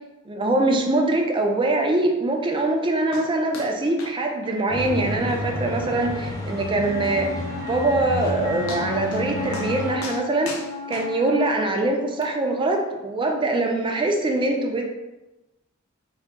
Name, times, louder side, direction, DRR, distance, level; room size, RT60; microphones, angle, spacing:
voice 1, 0.3-7.3 7.6-10.6 10.9-14.9, right 2 dB, 25° right, 3 dB, 0.4 m, -23 dB
sound 1, 3.1-3.3 3.5-3.7 4.0-4.2 4.4-4.5 5.0-5.1 5.5-5.6 6.0-6.1 7.8-7.9 8.2-8.4 8.7-9.3 9.5-9.7 10.0-11.5 12.2-12.3, left 2 dB, 75° left, 0.5 m, -37 dB
sound 2, 4.7-9.9, equal, 15° left, 0.7 m, -30 dB
Wind instrument woodwind instrument, 6.9-11.7, left 4 dB, 55° left, 0.8 m, -35 dB
3.7 x 2.0 x 3.5 m, 1.0 s
head